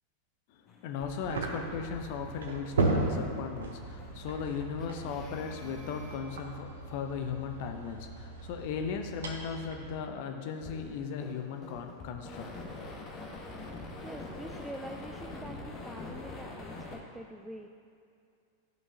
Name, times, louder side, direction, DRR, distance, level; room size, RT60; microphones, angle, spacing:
voice 1, 0.5-12.5, left 6 dB, 50° left, 5 dB, 0.7 m, -37 dB
sound 1, 0.7-2.0 2.3-3.7 4.0-6.2 10.6-17.0, left 2 dB, 30° left, 1.2 m, -45 dB
sound 2, 1.3-10.0, right 2 dB, 65° right, 0.9 m, -36 dB
voice 2, 14.0-17.7, right 1 dB, 5° right, 3 dB, 0.3 m, -45 dB
12.5 x 5.4 x 2.8 m, 2.4 s
figure-of-eight pair, 90°, 0 cm